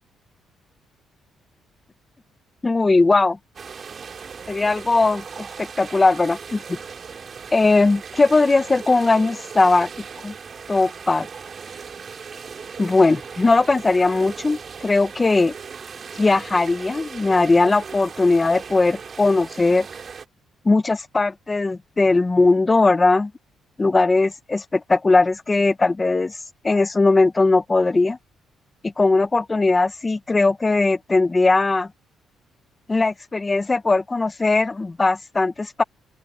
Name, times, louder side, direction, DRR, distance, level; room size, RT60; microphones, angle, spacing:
voice 1, 2.6-3.4 4.5-6.8 7.5-9.9 10.2-10.3 10.7-11.3 12.8-15.5 16.1-19.9 20.6-23.3 23.8-26.4 26.6-28.2 28.8-31.9 32.9-35.8, left 3 dB, 25° left, 1.4 m, -19 dB
sound 1, 3.6-20.3, right 6 dB, 45° right, 4.9 m, -38 dB
open air
cardioid pair, 90°, 0 cm